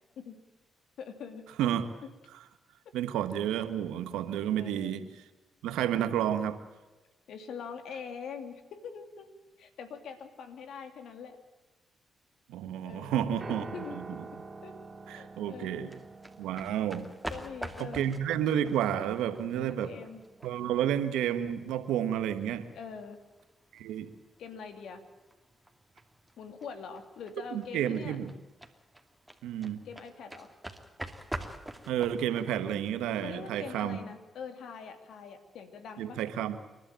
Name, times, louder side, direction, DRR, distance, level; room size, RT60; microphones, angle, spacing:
voice 1, 1.0-1.4 4.5-5.0 7.3-9.3 9.6-11.4 12.8-14.0 14.6-14.7 15.1-15.9 17.3-18.1 19.5-20.2 22.7-23.2 24.4-25.0 26.4-28.2 29.8-30.5 33.2-36.2, left 6 dB, 75° left, 8 dB, 2.6 m, -43 dB
voice 2, 2.9-5.1 5.6-6.6 12.5-14.0 15.1-16.0 16.4-17.1 17.8-19.9 20.4-22.7 23.7-24.1 27.5-28.3 29.4-29.8 31.9-34.0 36.0-36.6, right 10 dB, 85° right, 10 dB, 1.5 m, -31 dB
Piano, 13.4-21.7, right 3 dB, 45° right, 2.9 m, -49 dB
sound 1, 15.9-33.8, right 1 dB, 5° right, 2.7 m, -46 dB
28.5 x 12.5 x 9.0 m, 1.2 s
supercardioid pair, 50°, 0 cm